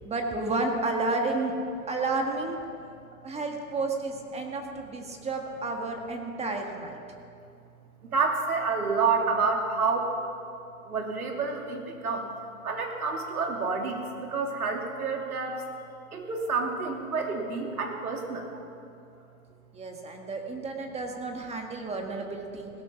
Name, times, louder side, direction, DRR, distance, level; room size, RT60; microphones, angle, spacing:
voice 1, 0.0-1.5 1.9-2.6 3.2-7.0 19.7-22.7, right 3 dB, 15° right, 2 dB, 1.6 m, -31 dB
voice 2, 8.0-10.1 10.8-12.3 12.6-15.6 16.1-18.7, right 4 dB, 90° right, 2 dB, 3.0 m, -29 dB
17.0 x 14.0 x 5.7 m, 2.5 s
hypercardioid pair, 125°, 43 cm